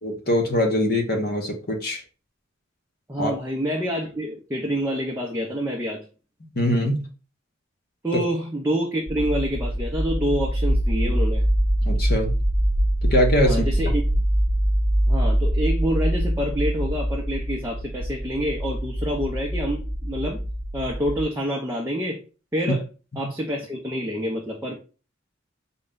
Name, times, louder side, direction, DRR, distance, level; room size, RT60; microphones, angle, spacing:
voice 1, 0.0-2.0 3.2-3.3 6.6-7.0 8.1-8.2 11.8-12.3 13.0-13.6, left 1 dB, 50° left, 3 dB, 0.9 m, -22 dB
voice 2, 3.1-6.0 8.0-11.4 13.4-14.0 15.1-20.4 20.7-22.2 22.5-22.8 23.2-24.8, equal, 15° right, -2 dB, 0.5 m, -27 dB
sound 1, 9.1-21.2, right 1 dB, 40° right, 0.9 m, -24 dB
4.1 x 2.2 x 3.7 m, 0.34 s
head